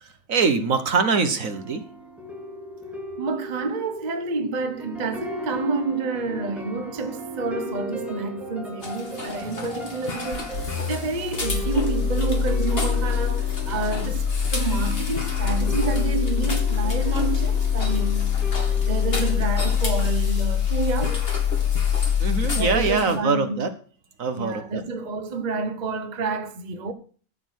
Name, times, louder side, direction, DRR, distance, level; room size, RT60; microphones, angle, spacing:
voice 1, 0.0-1.8 22.2-23.7 24.2-24.8, right 5 dB, 55° right, 1.4 m, -23 dB
sound 1, 1.4-19.5, equal, ahead, 2.3 m, -37 dB
voice 2, 3.2-21.3 22.5-23.7 24.3-26.9, right 3 dB, 30° right, 0.9 m, -29 dB
sound 2, 8.8-23.2, left 2 dB, 35° left, 2.3 m, -35 dB
sound 3, 10.3-23.0, left 8 dB, 60° left, 1.3 m, -24 dB
14.0 x 6.2 x 6.4 m
omnidirectional pair, 1.9 m